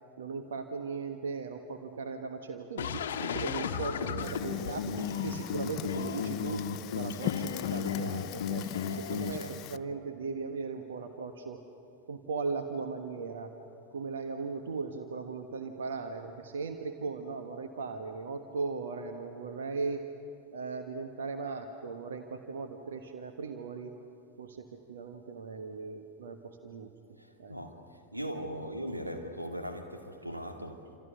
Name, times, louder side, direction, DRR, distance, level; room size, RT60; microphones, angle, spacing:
voice 1, 0.2-6.7 6.9-8.6 8.9-11.6 12.1-13.6 13.9-20.1 20.5-23.9 24.4-26.9 27.4-27.6, right 4 dB, 65° right, 1.4 m, -38 dB
sound 1, 2.8-9.3, left 7 dB, 60° left, 1.1 m, -34 dB
Fire, 4.2-9.8, left 14 dB, 40° left, 0.6 m, -41 dB
voice 2, 27.2-31.0, equal, 85° right, 2.2 m, -39 dB
29.0 x 26.5 x 6.7 m
figure-of-eight pair, 90°, 0 cm